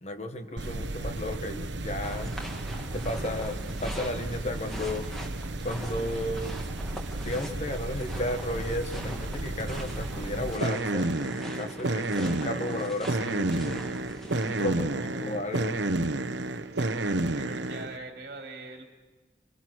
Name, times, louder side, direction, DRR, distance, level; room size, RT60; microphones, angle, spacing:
voice 1, 0.0-2.3 2.9-5.1 5.6-6.6 7.1-13.8 14.4-15.8, left 1 dB, 35° left, 7 dB, 1.4 m, -34 dB
sound 1, 0.6-18.0, right 2 dB, 80° right, 0.9 m, -32 dB
sound 2, 2.0-14.7, right 1 dB, ahead, 2.1 m, -43 dB
voice 2, 14.6-15.3 16.7-18.8, right 2 dB, 50° right, 2 dB, 2.5 m, -43 dB
24.5 x 22.0 x 6.3 m, 1.3 s
head